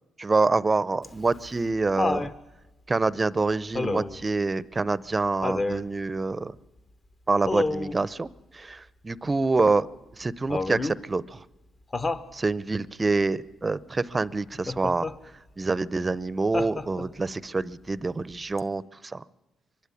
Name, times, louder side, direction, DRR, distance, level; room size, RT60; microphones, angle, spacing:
voice 1, 0.2-2.3 2.9-6.5 7.3-9.9 10.2-11.4 12.3-15.1 15.6-19.2, right 3 dB, 25° right, 19 dB, 0.6 m, -26 dB
Laughter, 1.0-2.4 3.7-4.2 5.4-5.9 7.4-8.0 10.5-11.0 11.9-12.3 14.7-15.2 16.5-17.2 18.6-18.7, left 3 dB, 30° left, 1.0 m, -29 dB
23.5 x 12.0 x 9.9 m, 1.0 s
cardioid pair, 90°, 0 cm